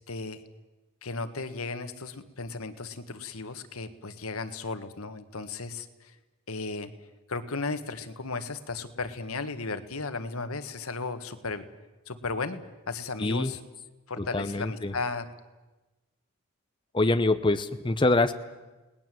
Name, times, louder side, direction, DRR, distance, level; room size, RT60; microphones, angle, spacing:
voice 1, 0.1-0.4 1.0-6.1 6.5-6.9 7.3-11.7 12.1-13.6 14.1-15.3, left 3 dB, 90° left, 10 dB, 1.6 m, -35 dB
voice 2, 13.2-13.5 14.2-14.9 16.9-18.3, left 2 dB, 25° left, 10 dB, 0.8 m, -25 dB
29.5 x 19.0 x 7.8 m, 1.2 s
head